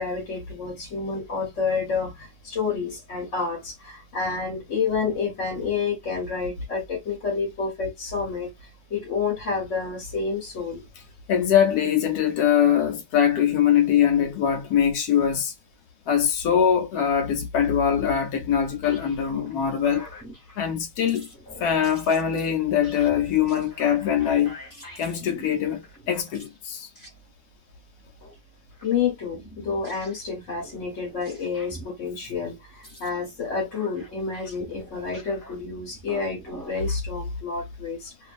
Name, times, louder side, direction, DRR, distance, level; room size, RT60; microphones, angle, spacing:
voice 1, 0.0-10.8 28.8-38.3, left 5 dB, 55° left, 1.2 m, -29 dB
voice 2, 11.3-15.5 16.1-20.1 20.6-21.3 21.6-24.6 25.0-26.9, left 8 dB, 85° left, 1.2 m, -22 dB
sound 1, 18.8-19.6 19.8-20.8 21.1-26.6 26.9-27.2 28.2-28.4 28.7-28.9 29.3-31.9 32.7-37.0, equal, 15° left, 1.1 m, -46 dB
2.6 x 2.4 x 2.5 m
omnidirectional pair, 1.6 m